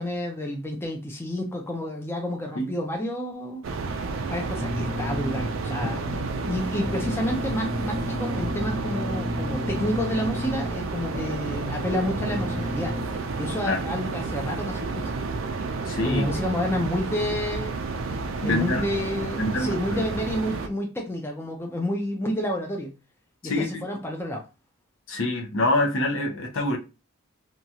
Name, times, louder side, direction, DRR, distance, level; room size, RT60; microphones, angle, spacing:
voice 1, 0.0-3.6 4.3-13.0 13.4-15.1 16.0-17.8 18.4-22.9 23.4-24.4, left 1 dB, 10° left, 0.4 m, -29 dB
sound 1, 3.6-20.7, right 4 dB, 65° right, 0.4 m, -31 dB
sound 2, 4.6-13.1, left 2 dB, 25° right, 0.6 m, -33 dB
voice 2, 15.9-16.2 18.4-18.8 19.4-20.0 23.4-23.8 25.1-26.8, left 2 dB, 60° left, 0.7 m, -25 dB
2.9 x 2.3 x 2.7 m
head